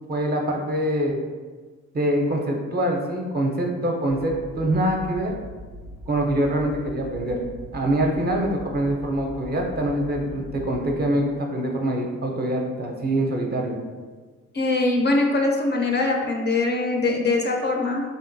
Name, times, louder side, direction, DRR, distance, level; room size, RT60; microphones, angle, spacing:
voice 1, 0.1-1.2 1.9-5.3 6.1-7.4 7.7-13.8, right 1 dB, 35° right, 1 dB, 0.5 m, -24 dB
sound 1, 4.1-11.0, equal, 85° right, 0.5 m, -41 dB
voice 2, 14.5-18.0, left 2 dB, 35° left, 1 dB, 0.4 m, -22 dB
3.6 x 2.2 x 2.6 m, 1.4 s
cardioid pair, 90°, 30 cm